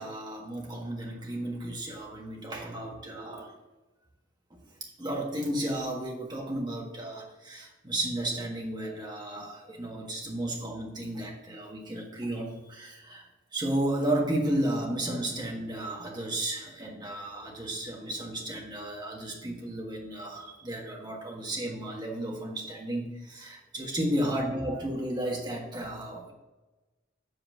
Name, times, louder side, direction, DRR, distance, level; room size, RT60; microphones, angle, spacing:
voice 1, 0.0-3.5 4.5-4.6 5.0-13.2 13.5-26.3, right 1 dB, 20° right, -1 dB, 1.5 m, -33 dB
7.9 x 4.2 x 6.1 m, 1.1 s
head